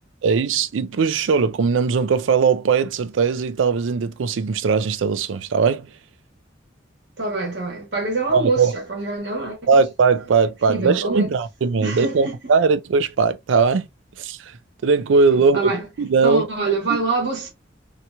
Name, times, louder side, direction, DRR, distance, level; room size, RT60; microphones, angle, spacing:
voice 1, 0.2-5.9 8.3-8.7 9.7-13.9 14.2-14.4 14.8-15.7 16.0-16.5 16.9-17.0, right 5 dB, 85° right, 0.4 m, -19 dB
voice 2, 7.2-9.6 10.7-11.3 11.8-12.4 15.5-15.8 16.2-17.5, right 3 dB, 60° right, 1.3 m, -25 dB
2.9 x 2.8 x 2.2 m
head